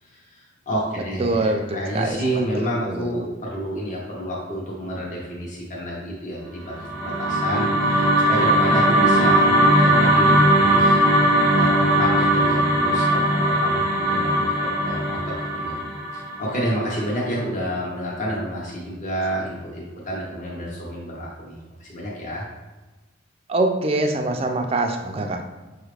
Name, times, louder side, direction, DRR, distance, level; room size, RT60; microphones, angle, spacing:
voice 1, 0.0-14.3 14.6-15.8 16.1-22.5, equal, 40° left, -4 dB, 0.7 m, -30 dB
voice 2, 1.2-2.2 23.5-25.4, right 2 dB, 30° right, 4 dB, 0.3 m, -23 dB
sound 1, 6.7-17.0, right 1 dB, 20° left, 1.0 m, -19 dB
5.8 x 2.4 x 3.2 m, 1.2 s
head